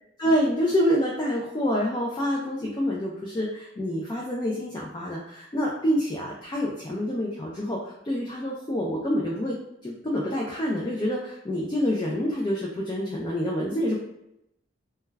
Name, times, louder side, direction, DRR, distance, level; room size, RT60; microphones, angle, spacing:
voice 1, 0.2-9.6 9.8-14.0, equal, 20° left, -3 dB, 0.3 m, -27 dB
2.2 x 2.2 x 3.2 m, 0.81 s
head